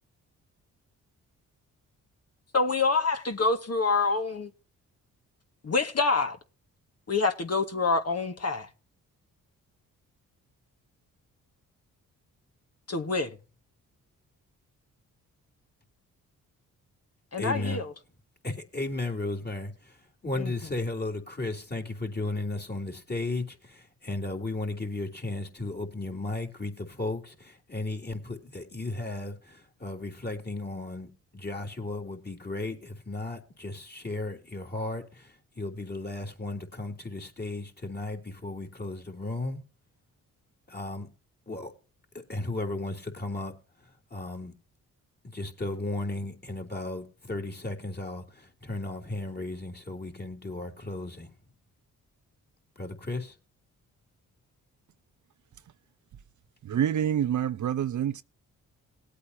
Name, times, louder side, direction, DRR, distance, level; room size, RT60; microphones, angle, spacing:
voice 1, 2.5-4.5 5.6-6.4 7.1-8.7 12.9-13.4 17.3-17.9 20.4-20.5, left 4 dB, 45° left, 1.9 m, -26 dB
voice 2, 17.4-17.8 18.4-39.6 40.7-41.1 41.5-41.7 42.3-43.5 43.8-44.5 45.2-51.3 52.8-53.4, left 2 dB, 30° left, 3.4 m, -35 dB
voice 3, 56.6-58.2, right 10 dB, 55° right, 0.7 m, -27 dB
19.0 x 8.4 x 2.8 m
supercardioid pair, 55°, 35 cm